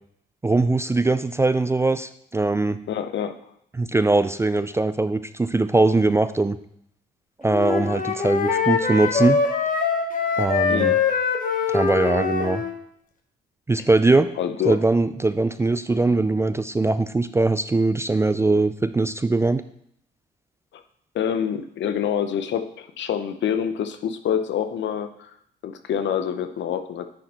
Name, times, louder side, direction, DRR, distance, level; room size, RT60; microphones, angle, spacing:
voice 1, 0.4-2.8 3.7-6.6 7.4-9.4 10.4-10.9 11.7-12.6 13.7-14.3 14.7-19.6, right 3 dB, 15° right, 12 dB, 0.3 m, -21 dB
voice 2, 2.9-3.4 10.7-11.0 14.4-14.8 20.7-20.8 21.1-25.3 25.6-27.1, left 8 dB, 65° left, 9 dB, 0.8 m, -26 dB
Wind instrument woodwind instrument, 7.5-12.7, left 5 dB, 45° left, 1.2 m, -23 dB
9.8 x 4.3 x 4.3 m, 0.71 s
cardioid pair, 90°, 20 cm